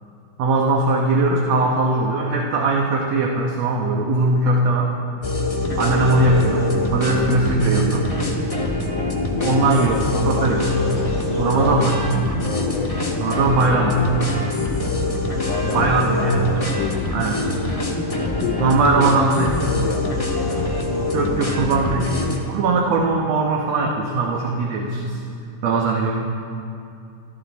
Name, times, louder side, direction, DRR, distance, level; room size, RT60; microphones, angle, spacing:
voice 1, 0.4-4.9 5.8-6.7 6.9-8.1 9.4-10.8 11.4-12.0 13.2-14.0 15.6-16.5 17.1-17.4 18.6-19.5 21.1-22.1 22.5-25.2 25.6-26.1, right 3 dB, 65° right, 0 dB, 2.2 m, -20 dB
sound 1, 5.2-22.4, left 2 dB, 20° left, 0.9 m, -24 dB
voice 2, 5.9-6.2 9.3-10.6 11.5-11.8 12.4-13.6 15.4-17.1 17.4-17.5 18.4-20.5, left 9 dB, 75° left, 4 dB, 1.5 m, -31 dB
sound 2, 10.4-17.9, equal, 30° right, 3.6 m, -40 dB
27.0 x 13.0 x 4.1 m, 2.5 s
omnidirectional pair, 3.4 m